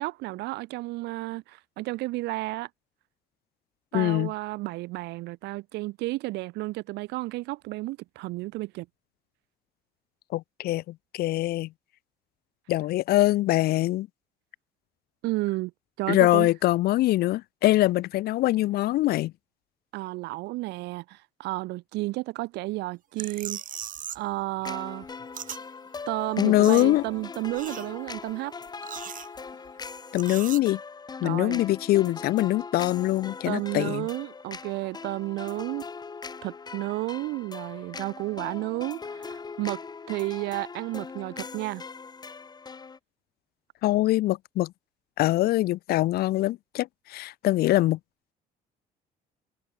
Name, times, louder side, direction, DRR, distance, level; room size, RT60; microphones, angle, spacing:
voice 1, 0.0-2.7 3.9-8.9 15.2-15.7 16.0-16.5 19.9-23.6 24.1-25.1 26.1-28.5 31.2-31.6 33.5-35.9 36.4-39.8 40.1-41.8, right 20 dB, 85° right, 0.9 m, -32 dB
voice 2, 3.9-4.3 10.3-11.7 12.7-14.1 16.1-19.3 26.4-27.0 30.1-30.8 31.2-34.1 43.8-44.7 45.2-48.0, left 16 dB, 65° left, 0.5 m, -23 dB
sound 1, 23.2-24.3 24.6-25.6 26.0-26.1 26.3-27.2 27.5-28.2 28.7-29.7 30.2-30.6, right 10 dB, 55° right, 3.1 m, -39 dB
sound 2, 24.6-43.0, left 5 dB, 25° left, 1.1 m, -41 dB
cardioid pair, 110°, 17 cm